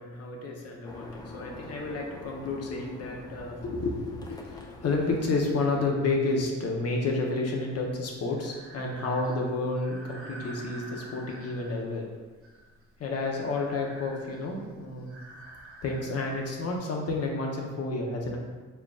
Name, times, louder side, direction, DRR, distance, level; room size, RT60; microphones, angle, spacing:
voice 1, 0.0-12.1 13.0-15.1 15.8-18.4, left 3 dB, 55° left, 0 dB, 0.9 m, -30 dB
sound 1, 0.8-6.1, left 2 dB, 15° left, 0.4 m, -46 dB
Breathing, 7.8-16.8, right 1 dB, 45° right, 0.8 m, -49 dB
4.5 x 3.6 x 2.4 m, 1.3 s
cardioid pair, 90°, 30 cm